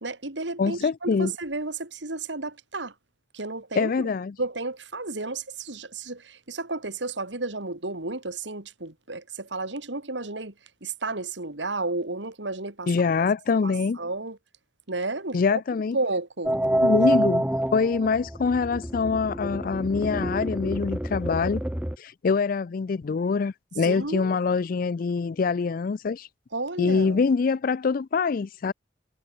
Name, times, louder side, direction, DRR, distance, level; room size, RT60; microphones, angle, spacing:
voice 1, 0.0-2.9 3.3-4.1 4.4-10.5 10.8-12.9 13.6-14.4 14.9-15.6 15.9-16.6 23.8-24.4 26.5-27.2, right 3 dB, 85° right, 3.2 m, -32 dB
voice 2, 0.6-1.3 3.8-4.4 12.9-14.0 15.3-16.0 16.8-17.4 17.7-21.6 22.0-26.3 26.8-28.7, left 5 dB, 50° left, 0.4 m, -24 dB
sound 1, 16.5-22.0, right 1 dB, 5° right, 0.9 m, -27 dB
head